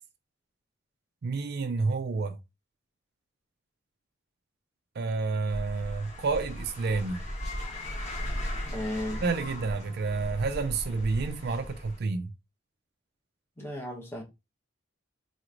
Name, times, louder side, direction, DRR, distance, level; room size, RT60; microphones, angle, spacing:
voice 1, 1.2-2.4 5.0-7.2 9.2-12.3, right 4 dB, 55° right, 0.4 m, -29 dB
sound 1, 5.5-12.0, equal, 35° left, 1.4 m, -37 dB
voice 2, 8.7-9.2 13.6-14.2, left 1 dB, 15° left, 1.0 m, -34 dB
4.1 x 3.0 x 2.5 m
head